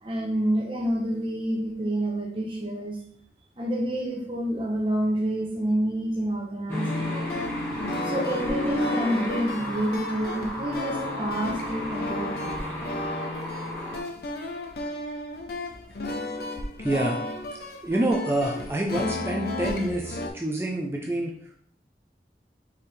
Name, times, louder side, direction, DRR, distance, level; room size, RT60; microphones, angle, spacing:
voice 1, 0.0-3.0 3.6-7.3 8.0-12.6, right 1 dB, 30° right, -1 dB, 0.9 m, -28 dB
sound 1, 6.7-14.0, left 1 dB, 10° left, 1.0 m, -32 dB
sound 2, 6.9-20.3, left 2 dB, 60° left, 0.6 m, -34 dB
voice 2, 16.8-17.2 17.8-21.3, right 1 dB, 15° right, 0 dB, 0.4 m, -27 dB
4.4 x 3.4 x 3.4 m, 0.64 s
head